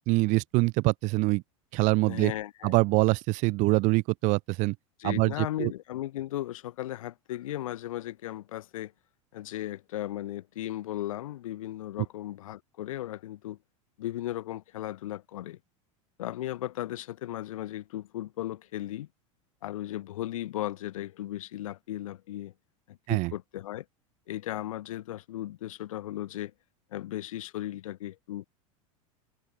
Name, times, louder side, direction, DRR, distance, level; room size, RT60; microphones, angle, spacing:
voice 1, 0.1-1.4 1.7-2.3 2.6-4.7 5.0-5.7 23.1-23.3, right 24 dB, 50° right, 1.7 m, -24 dB
voice 2, 2.1-2.8 5.0-8.9 9.3-13.6 14.0-15.6 16.2-19.1 19.6-22.5 22.9-23.8 24.3-26.5 26.9-28.5, left 14 dB, 90° left, 2.1 m, -36 dB
supercardioid pair, 140°, 17 cm